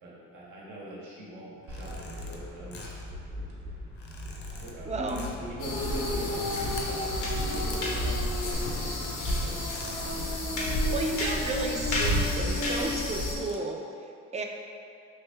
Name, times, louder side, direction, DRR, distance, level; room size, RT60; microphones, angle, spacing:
voice 1, 0.0-3.0 4.5-9.7, equal, 80° right, -5 dB, 0.9 m, -41 dB
sound 1, 1.6-2.4 2.7-3.1 3.9-4.7 5.1-5.5 6.2-6.9 7.4-7.8 8.5-9.1 9.7-10.1 10.4-10.5 10.7-11.4 11.9-12.4 13.2-13.6, left 4 dB, 50° left, 0.6 m, -46 dB
sound 2, 1.7-8.5, left 1 dB, 55° right, 0.7 m, -40 dB
voice 2, 4.8-5.2 10.9-14.4, right 3 dB, 25° right, 2 dB, 0.3 m, -33 dB
sound 3, 5.6-13.3, left 1 dB, 90° left, 0.8 m, -29 dB
3.2 x 2.7 x 3.4 m, 2.4 s
cardioid pair, 90°, 30 cm